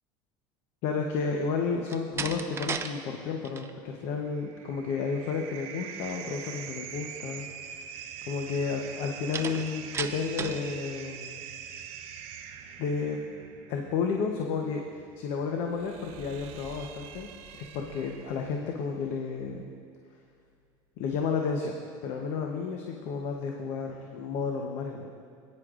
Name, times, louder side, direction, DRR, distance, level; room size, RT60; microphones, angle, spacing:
voice 1, 0.8-7.9 8.3-11.4 12.8-13.2 13.7-19.7 21.0-21.8 22.0-25.1, left 5 dB, 65° left, 2 dB, 0.8 m, -32 dB
Slam, 1.8-2.9 3.3-3.7 9.3-10.7, right 6 dB, 20° right, 0.5 m, -34 dB
sound 1, 4.1-18.7, right 8 dB, 65° right, 0.7 m, -44 dB
18.0 x 9.6 x 2.5 m, 2.2 s
cardioid pair, 130°, 12 cm